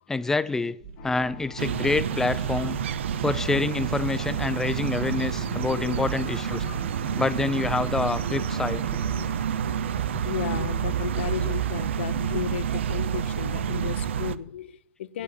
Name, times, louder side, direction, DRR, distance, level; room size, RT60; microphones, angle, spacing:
voice 1, 0.1-0.8 1.0-2.8 3.2-6.6 7.2-8.8, left 3 dB, 5° left, 0.4 m, -27 dB
sound 1, 0.8-14.4, right 6 dB, 60° right, 1.4 m, -44 dB
sound 2, 1.0-9.5, left 13 dB, 50° left, 1.0 m, -45 dB
sound 3, 1.6-14.4, right 8 dB, 80° right, 0.6 m, -29 dB
voice 2, 5.2-6.1 6.5-7.1 8.3-8.5 8.9-9.3 9.6-10.0 10.2-15.2, left 11 dB, 75° left, 0.7 m, -35 dB
8.4 x 8.3 x 7.9 m
hypercardioid pair, 140°, 6 cm